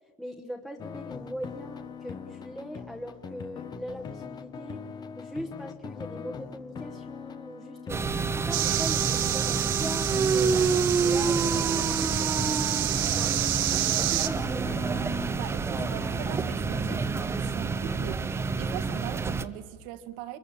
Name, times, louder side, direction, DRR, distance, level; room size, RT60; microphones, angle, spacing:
voice 1, 0.2-4.9 5.2-10.7 11.0-12.0 12.5-14.8, equal, ahead, 1 dB, 1.2 m, -40 dB
sound 1, 0.8-18.9, left 6 dB, 25° left, 1.0 m, -42 dB
sound 2, 7.9-19.5, right 5 dB, 15° right, 0.8 m, -28 dB
sound 3, 8.5-14.3, right 15 dB, 90° right, 1.5 m, -29 dB
voice 2, 15.4-20.4, right 12 dB, 70° right, 9 dB, 1.8 m, -40 dB
24.5 x 21.5 x 8.7 m, 1.5 s
cardioid pair, 150°, 17 cm